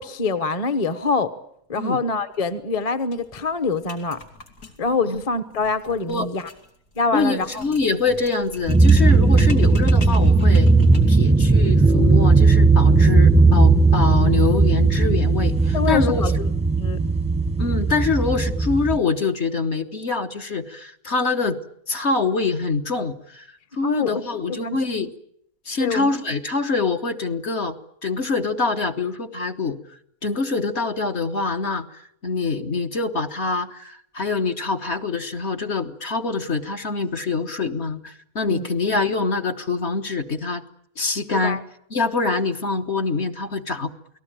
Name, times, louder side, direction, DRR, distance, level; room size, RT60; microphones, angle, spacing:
voice 1, 0.0-1.3 1.7-4.2 4.8-6.5 7.0-7.6 15.7-16.5 16.8-17.0 23.8-24.2 24.5-24.8 25.8-26.1 38.5-38.7 41.4-41.6, left 4 dB, 25° left, 11 dB, 1.1 m, -25 dB
sound 1, 2.3-2.5 2.8-2.9 3.1-11.3, left 2 dB, 80° left, 3.6 m, -39 dB
voice 2, 7.1-10.7 11.1-16.2 17.6-21.6 21.9-23.5 23.7-25.1 25.7-27.8 28.0-29.8 30.2-31.9 32.2-40.6 41.0-41.6 41.9-43.9, left 4 dB, 45° left, 5 dB, 1.5 m, -25 dB
sound 2, 8.7-19.0, right 3 dB, 5° right, 0.8 m, -16 dB
28.5 x 19.0 x 8.9 m, 0.70 s
omnidirectional pair, 1.6 m